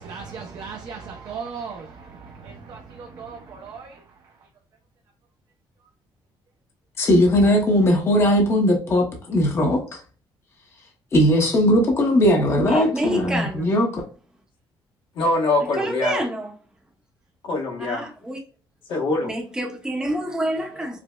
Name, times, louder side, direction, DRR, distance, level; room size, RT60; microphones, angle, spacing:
voice 1, 0.0-4.5 20.3-21.0, right 5 dB, 45° right, 0.5 m, -38 dB
voice 2, 7.0-10.0 11.1-14.0, equal, 30° left, 0.7 m, -19 dB
voice 3, 12.7-13.7 15.7-16.5 17.8-18.4 19.2-21.0, equal, 10° right, 0.7 m, -27 dB
voice 4, 15.1-16.2 17.4-18.1 18.9-19.3, left 2 dB, 65° left, 1.2 m, -23 dB
4.8 x 2.0 x 2.2 m
cardioid pair, 175°, 9 cm